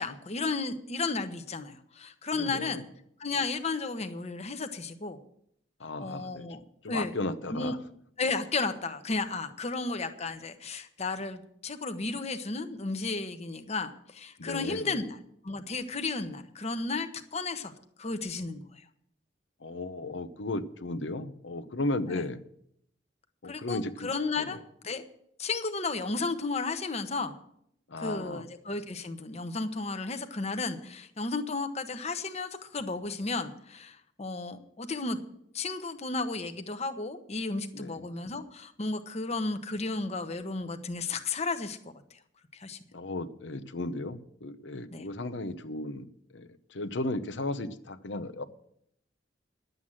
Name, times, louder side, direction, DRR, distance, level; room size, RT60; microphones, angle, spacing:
voice 1, 0.0-2.8 3.2-5.2 6.0-6.6 6.9-7.1 7.5-7.8 8.2-15.2 15.4-17.7 18.0-18.8 22.1-22.2 23.4-24.6 24.8-25.0 25.4-27.4 28.0-35.2 35.5-41.8 42.5-42.8 44.9-45.0, left 3 dB, 35° left, 8 dB, 1.0 m, -33 dB
voice 2, 2.3-2.8 5.8-6.5 6.8-7.8 14.4-15.0 19.6-22.4 23.4-24.1 24.4-24.6 27.9-28.4 37.7-38.1 42.9-48.4, left 2 dB, 80° left, 12 dB, 0.8 m, -35 dB
11.5 x 8.1 x 7.4 m, 0.71 s
head